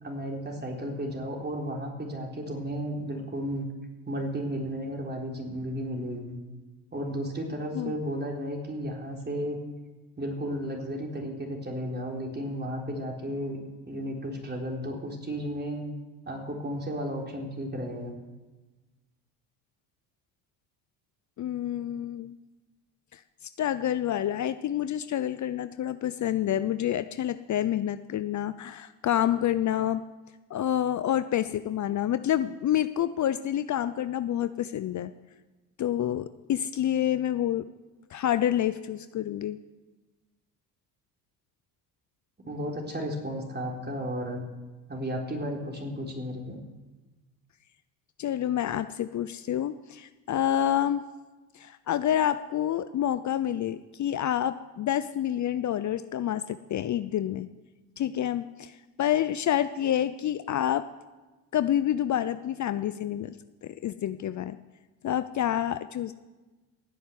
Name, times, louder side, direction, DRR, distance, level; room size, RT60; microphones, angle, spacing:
voice 1, 0.0-3.7 4.1-6.3 6.9-9.6 10.2-13.6 13.9-15.9 16.2-18.1 42.4-44.4 44.9-46.6, equal, 25° right, 0 dB, 4.0 m, -33 dB
voice 2, 21.4-22.3 23.1-23.2 23.6-30.0 30.5-35.1 35.8-37.7 38.1-39.6 48.2-51.0 51.5-57.5 58.0-60.9 61.5-63.3 63.6-64.6 65.0-66.1, left 11 dB, 45° left, 12 dB, 0.7 m, -28 dB
15.5 x 7.9 x 9.4 m, 1.2 s
supercardioid pair, 75°, 41 cm